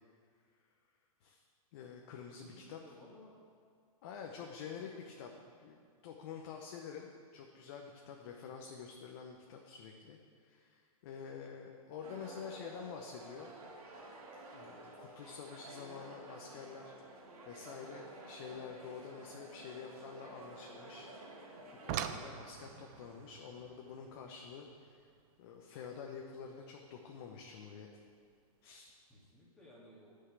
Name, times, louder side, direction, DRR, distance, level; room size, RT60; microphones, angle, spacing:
voice 1, 1.7-2.8 4.0-5.3 5.6-13.5 14.5-16.9 17.4-21.1 21.8-25.1 25.4-27.9 28.6-28.9, left 6 dB, 40° left, 2 dB, 0.9 m, -48 dB
voice 2, 2.3-3.3 4.3-5.0 22.0-22.2 29.1-30.1, left 1 dB, 5° left, -7 dB, 2.3 m, -59 dB
sound 1, 12.0-22.1, right 2 dB, 80° right, 2.6 m, -52 dB
sound 2, 21.6-26.6 28.0-28.1 28.7-28.9 29.3-29.4, right 10 dB, 30° right, 0.4 m, -45 dB
9.7 x 5.7 x 8.2 m, 2.2 s
hypercardioid pair, 150°, 19 cm